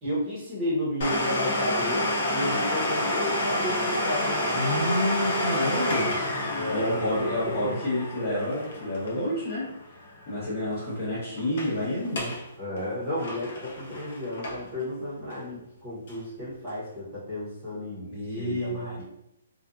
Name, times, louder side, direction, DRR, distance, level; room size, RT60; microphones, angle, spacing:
voice 1, 0.0-4.9 6.6-7.8 10.4-10.5 12.6-19.0, left 1 dB, 15° right, -10 dB, 1.0 m, -33 dB
Domestic sounds home sounds, 1.0-10.4 10.7-10.8 11.4-11.7 12.0-12.4 12.8-14.8 15.3-15.4 16.1-16.2, left 1 dB, 45° left, 0.5 m, -29 dB
voice 2, 4.5-6.1 6.7-9.7 10.3-12.3 18.0-19.0, left 1 dB, 25° left, -13 dB, 1.0 m, -29 dB
2.5 x 2.3 x 2.5 m, 0.85 s
hypercardioid pair, 175°, 0 cm